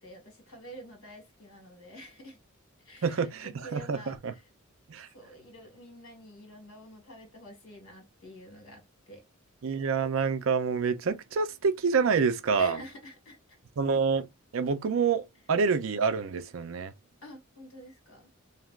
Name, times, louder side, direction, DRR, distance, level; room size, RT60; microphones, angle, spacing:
voice 1, 0.0-2.4 2.8-4.4 5.1-9.2 12.5-13.6 17.2-18.3, equal, 75° left, 1.7 m, -48 dB
voice 2, 3.0-4.3 4.9-5.1 9.6-12.8 13.8-14.3 14.5-16.9, right 5 dB, 70° right, 0.5 m, -27 dB
3.2 x 2.7 x 2.4 m
head